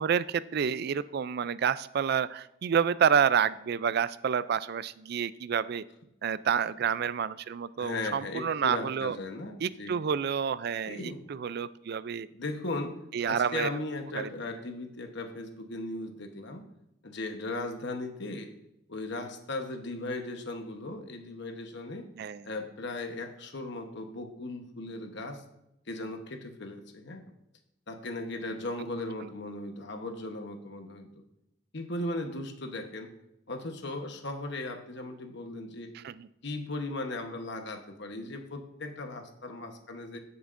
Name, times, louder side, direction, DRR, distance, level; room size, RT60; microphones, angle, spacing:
voice 1, 0.0-5.8 6.2-9.2 9.6-12.3 13.1-13.7 14.1-14.3 22.2-22.5 29.2-29.3 35.9-36.3, right 7 dB, 50° right, 17 dB, 0.3 m, -29 dB
voice 2, 7.8-10.0 10.9-11.2 12.3-12.9 13.3-16.6 17.0-18.5 18.9-22.1 22.4-25.4 25.9-27.2 27.9-31.1 31.7-33.1 33.5-35.9 36.4-40.2, left 2 dB, 60° left, 5 dB, 1.0 m, -37 dB
15.5 x 6.9 x 2.6 m, 0.85 s
head